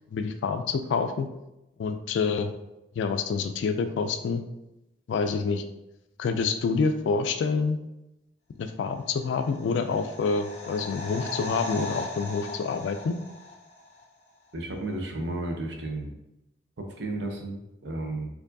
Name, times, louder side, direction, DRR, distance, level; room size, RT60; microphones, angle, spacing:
voice 1, 0.1-1.3 1.8-2.5 3.0-4.4 5.1-5.6 6.2-7.8 8.6-13.2, left 5 dB, 85° left, 7 dB, 0.3 m, -27 dB
sound 1, 9.2-14.0 14.3-14.4, left 2 dB, 35° left, 0.7 m, -39 dB
voice 2, 14.5-16.1 16.8-18.3, right 2 dB, 70° right, 2 dB, 0.7 m, -33 dB
4.4 x 2.7 x 2.6 m, 0.91 s
head